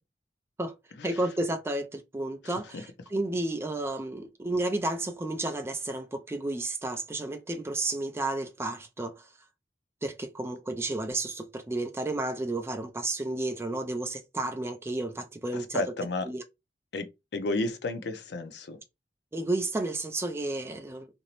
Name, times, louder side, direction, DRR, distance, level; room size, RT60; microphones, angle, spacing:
voice 1, 1.0-9.2 10.0-15.8 16.3-16.4 19.3-21.1, right 2 dB, 15° right, 0.3 m, -32 dB
voice 2, 2.4-2.8 15.5-16.3 16.9-18.8, left 2 dB, 70° left, 0.5 m, -32 dB
2.6 x 2.0 x 2.8 m
head